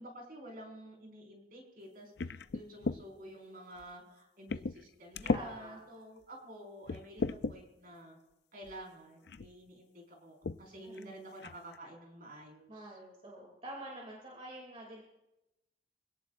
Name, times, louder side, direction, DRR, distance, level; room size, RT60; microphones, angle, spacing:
voice 1, 0.0-8.2 8.5-13.0, right 1 dB, 55° right, 0 dB, 5.1 m, -50 dB
sound 1, 2.2-3.0 3.8-3.9 4.5-4.8 5.1-5.5 6.2-6.3 6.9-7.6 8.6-8.8 9.3-9.5 10.4-10.6 11.0-11.1 11.4-11.8, left 3 dB, 65° left, 0.5 m, -35 dB
voice 2, 5.3-5.8 10.8-11.2 12.7-15.0, right 1 dB, 35° right, -2 dB, 2.8 m, -47 dB
25.0 x 17.5 x 2.6 m, 0.95 s
head